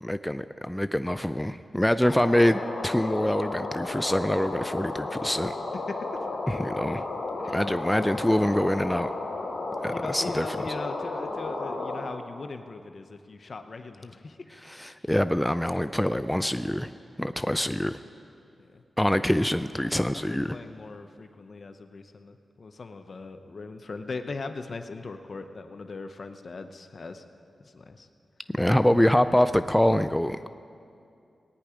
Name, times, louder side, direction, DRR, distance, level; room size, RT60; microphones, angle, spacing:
voice 1, 0.0-5.5 6.5-7.0 7.5-9.1 9.8-10.7 14.6-16.9 17.2-18.0 19.0-20.6 28.5-30.5, left 1 dB, 10° left, 11 dB, 0.4 m, -25 dB
sound 1, 2.0-12.0, left 3 dB, 80° left, 2.9 m, -33 dB
voice 2, 9.9-14.4 18.6-18.8 19.2-19.3 19.9-27.2 27.6-28.1, left 3 dB, 60° left, 8 dB, 0.9 m, -39 dB
18.5 x 9.7 x 5.0 m, 2.4 s
cardioid pair, 60°, 0 cm